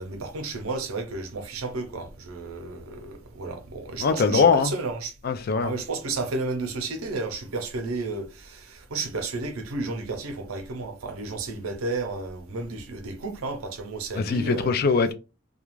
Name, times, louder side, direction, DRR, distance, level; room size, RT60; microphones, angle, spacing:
voice 1, 0.0-5.1 5.6-14.7, right 3 dB, 85° right, 0.7 m, -32 dB
voice 2, 4.0-4.7 5.2-5.7 14.1-15.1, left 5 dB, 50° left, 0.4 m, -21 dB
2.3 x 2.3 x 3.0 m
head